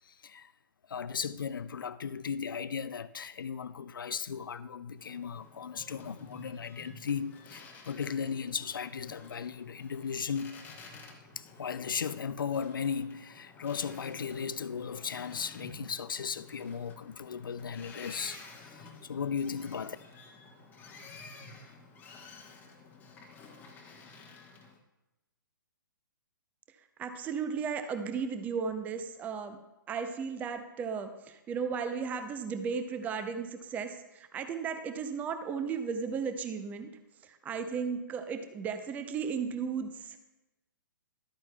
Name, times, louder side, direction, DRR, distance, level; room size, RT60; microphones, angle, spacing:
voice 1, 0.1-0.5 0.9-10.7 11.4-20.0, left 6 dB, 70° left, 0.4 m, -36 dB
Boat Water vehicle, 5.0-24.8, left 4 dB, 15° left, 1.0 m, -51 dB
voice 2, 27.0-29.6 29.9-36.9 37.2-40.2, right 6 dB, 15° right, 0.5 m, -35 dB
12.5 x 8.8 x 2.2 m
figure-of-eight pair, 125°, 11 cm